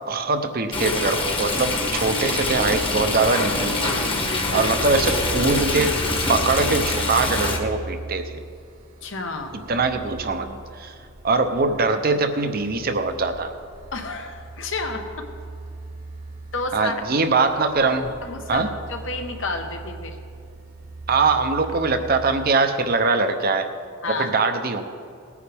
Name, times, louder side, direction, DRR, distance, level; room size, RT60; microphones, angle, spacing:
voice 1, 0.0-3.9 4.5-6.0 6.3-8.3 9.7-10.9 11.2-13.5 16.7-18.1 18.5-18.7 21.1-23.7 24.2-24.8, right 3 dB, 45° right, 7 dB, 0.8 m, -22 dB
Stream, 0.7-7.6, left 2 dB, 25° left, 1.3 m, -25 dB
voice 2, 4.2-4.7 9.0-9.6 13.9-15.3 16.5-17.2 18.2-20.2 24.0-24.3, left 3 dB, 60° left, 5 dB, 1.2 m, -31 dB
sound 1, 4.5-22.5, right 2 dB, 75° right, 1.1 m, -38 dB
18.5 x 9.6 x 3.5 m, 2.5 s
head